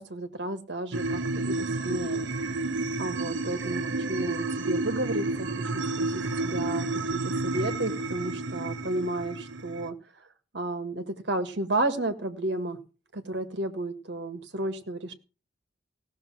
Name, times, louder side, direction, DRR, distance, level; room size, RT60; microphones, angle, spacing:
voice 1, 0.0-2.3 3.0-6.1 6.4-10.0 10.5-12.8 13.1-15.1, right 2 dB, 60° right, 8 dB, 1.8 m, -32 dB
sound 1, 0.9-9.9, right 2 dB, 85° right, 1.0 m, -31 dB
16.5 x 6.7 x 6.0 m, 0.33 s
head